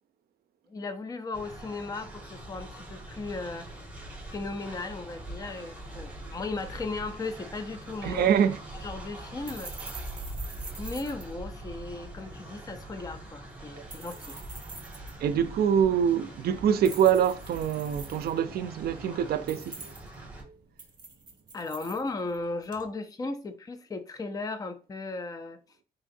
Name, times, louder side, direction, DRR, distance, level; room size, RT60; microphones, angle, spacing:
voice 1, 0.7-3.7 4.3-8.3 8.8-9.7 10.8-14.4 21.5-25.6, left 3 dB, 20° left, 0.5 m, -36 dB
Train, 1.3-20.4, right 1 dB, 10° right, 1.7 m, -43 dB
sound 1, 7.8-22.9, right 4 dB, 25° right, 1.1 m, -48 dB
voice 2, 8.0-8.6 15.2-19.9, right 8 dB, 75° right, 0.4 m, -25 dB
4.0 x 3.7 x 2.5 m
cardioid pair, 100°, 16 cm